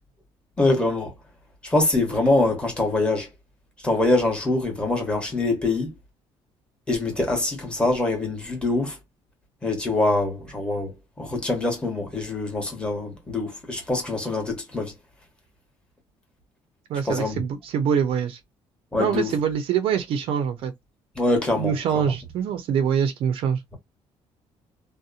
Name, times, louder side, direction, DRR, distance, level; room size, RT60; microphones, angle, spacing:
voice 1, 0.6-1.1 1.6-3.3 3.8-5.9 6.9-9.0 9.6-14.9 17.1-17.4 18.9-19.3 21.2-22.0, left 2 dB, 10° left, 1.0 m, -24 dB
voice 2, 16.9-18.4 19.0-20.7 21.6-23.6, right 8 dB, 60° right, 0.5 m, -24 dB
2.7 x 2.0 x 2.4 m
cardioid pair, 165°, 11 cm